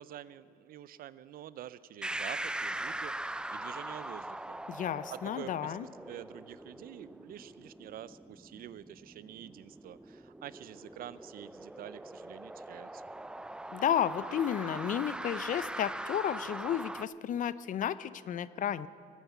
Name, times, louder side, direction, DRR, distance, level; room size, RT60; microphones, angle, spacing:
voice 1, 0.0-4.6 5.1-13.0, right 11 dB, 60° right, 17 dB, 0.6 m, -47 dB
sound 1, 2.0-17.0, right 1 dB, 5° right, 0.3 m, -41 dB
voice 2, 4.7-5.9 13.7-18.9, left 9 dB, 50° left, 17 dB, 0.6 m, -32 dB
19.0 x 9.3 x 8.3 m, 2.7 s
cardioid pair, 110°, 17 cm